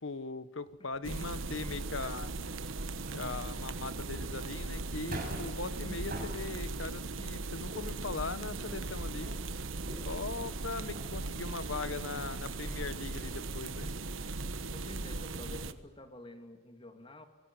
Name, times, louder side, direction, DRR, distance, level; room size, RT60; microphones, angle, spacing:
voice 1, 0.0-2.3 3.1-9.4 10.0-13.9, left 3 dB, 75° left, 14 dB, 1.3 m, -40 dB
sound 1, 0.6-2.7 3.0-7.2 7.5-12.1 12.5-12.7 13.1-14.6 15.0-15.1 15.4-15.5, right 1 dB, 45° right, 7.8 m, -47 dB
sound 2, 1.0-15.7, right 3 dB, 85° right, 1.3 m, -38 dB
voice 2, 14.7-17.2, left 1 dB, 25° left, 6 dB, 2.4 m, -49 dB
26.5 x 18.5 x 9.8 m, 1.4 s
head